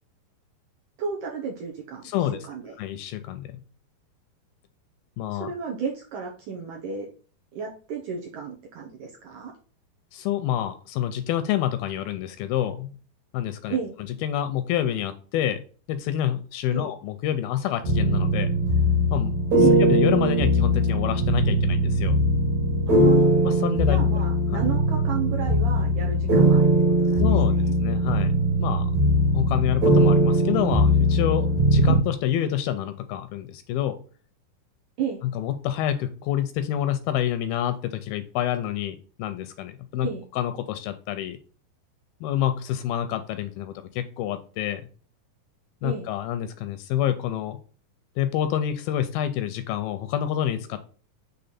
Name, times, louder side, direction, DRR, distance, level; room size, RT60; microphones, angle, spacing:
voice 1, 1.0-2.0 2.5-2.7 5.3-7.1 7.6-9.5 13.7-13.9 16.7-16.9 19.6-19.8 22.9-23.3 23.9-27.3 27.6-27.7 31.9-32.0 35.0-35.2 40.0-40.2 45.8-46.1, right 6 dB, 75° right, -1 dB, 1.9 m, -32 dB
voice 2, 2.0-2.4 2.8-3.6 5.2-5.5 10.1-12.9 13.3-13.8 14.2-15.6 15.9-18.5 19.1-19.4 19.7-22.2 23.4-24.0 27.2-27.5 27.8-28.9 29.3-34.0 35.2-40.1 40.3-41.4 42.2-44.8 45.8-47.6 48.2-50.8, left 11 dB, 80° left, 10 dB, 2.3 m, -27 dB
sound 1, 17.8-32.0, equal, 50° right, 2.7 m, -20 dB
6.8 x 3.3 x 4.2 m, 0.39 s
omnidirectional pair, 4.6 m